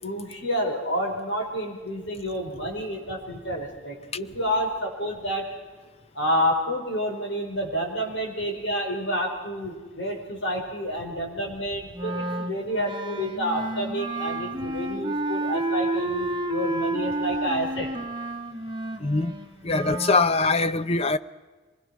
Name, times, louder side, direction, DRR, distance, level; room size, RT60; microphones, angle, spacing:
voice 1, 0.0-5.4 6.1-17.9, equal, 75° left, 5.4 m, -29 dB
Wind instrument woodwind instrument, 11.9-20.3, right 2 dB, 25° right, 1.2 m, -30 dB
voice 2, 19.0-19.3 19.6-21.2, left 3 dB, 35° left, 0.6 m, -22 dB
25.0 x 20.5 x 6.2 m
head